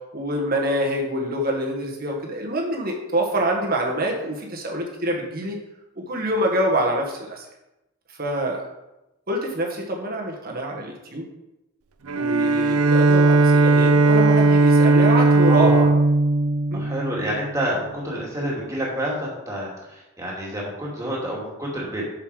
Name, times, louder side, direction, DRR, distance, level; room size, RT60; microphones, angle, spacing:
voice 1, 0.0-5.6 6.1-7.5 8.2-8.7 9.3-11.3 12.2-15.8 16.7-16.9, right 1 dB, 40° right, 0 dB, 1.4 m, -25 dB
Bowed string instrument, 12.1-17.6, right 2 dB, 80° right, 0.6 m, -17 dB
voice 2, 15.5-15.9 16.7-22.1, equal, 15° right, -4 dB, 2.3 m, -28 dB
7.3 x 6.8 x 4.8 m, 0.94 s
head